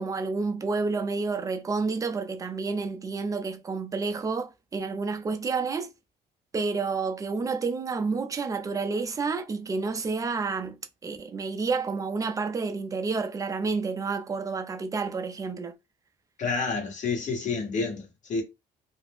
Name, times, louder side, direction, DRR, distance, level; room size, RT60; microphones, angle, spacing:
voice 1, 0.0-5.9 6.5-10.8 11.0-15.7, right 4 dB, 20° right, 0.4 m, -29 dB
voice 2, 16.4-18.4, left 4 dB, 45° left, 1.1 m, -29 dB
2.4 x 2.1 x 3.4 m
cardioid pair, 110°, 17 cm